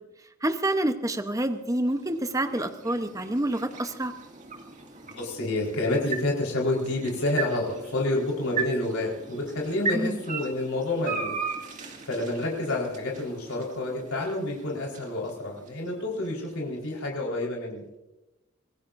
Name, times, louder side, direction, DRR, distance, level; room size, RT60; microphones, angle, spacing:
voice 1, 0.4-4.1 9.9-10.2, right 1 dB, 15° right, 8 dB, 0.9 m, -27 dB
sound 1, 1.0-17.2, right 5 dB, 35° right, 2.2 m, -38 dB
voice 2, 5.0-11.3 11.7-17.8, left 2 dB, 75° left, -3 dB, 4.5 m, -29 dB
26.0 x 18.5 x 2.6 m, 0.99 s
head